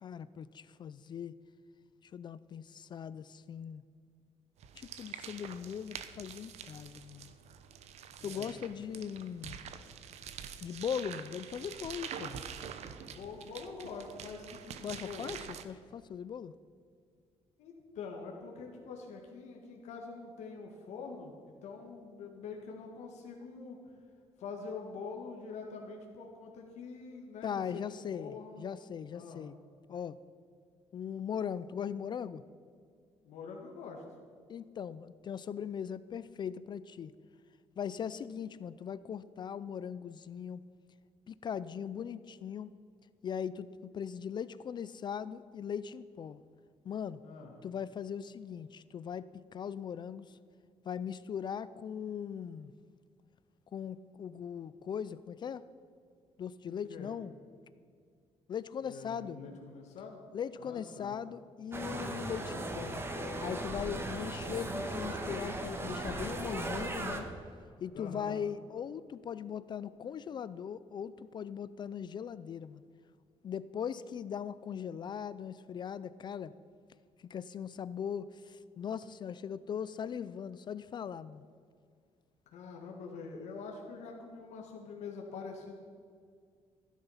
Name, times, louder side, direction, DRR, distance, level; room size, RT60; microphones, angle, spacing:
voice 1, 0.0-1.3 2.0-3.8 4.8-7.3 8.2-9.6 10.6-12.3 14.8-16.5 27.4-29.6 29.9-30.2 30.9-32.4 34.5-37.1 37.8-40.6 41.3-42.8 43.2-46.4 46.8-47.2 47.6-50.4 50.8-52.7 53.7-55.6 56.4-57.3 58.5-59.6 60.3-63.0 63.4-67.3 67.8-72.8 73.4-76.5 77.2-81.5, left 8 dB, 40° left, 16 dB, 0.4 m, -39 dB
sound 1, 4.6-15.6, right 8 dB, 70° right, 1.0 m, -46 dB
voice 2, 8.2-8.5 12.9-15.3 17.6-23.9 24.4-28.6 29.1-29.5 33.2-34.0 47.2-47.5 56.7-57.1 58.8-60.2 60.6-61.2 67.9-68.4 82.5-85.7, left 4 dB, 85° left, 0 dB, 1.8 m, -45 dB
sound 2, 61.7-67.2, right 1 dB, 20° right, 1.6 m, -37 dB
16.0 x 10.5 x 5.7 m, 2.2 s
cardioid pair, 135°, 11 cm